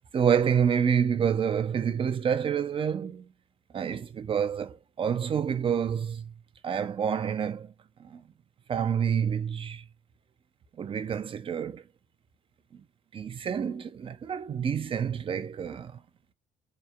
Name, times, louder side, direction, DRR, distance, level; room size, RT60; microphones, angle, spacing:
voice 1, 0.1-3.2 3.7-6.3 6.6-7.7 8.0-8.2 8.7-9.8 10.8-11.8 12.7-12.8 13.1-15.9, right 7 dB, 30° right, 0.4 m, -28 dB
2.8 x 2.0 x 2.3 m
cardioid pair, 110°, 17 cm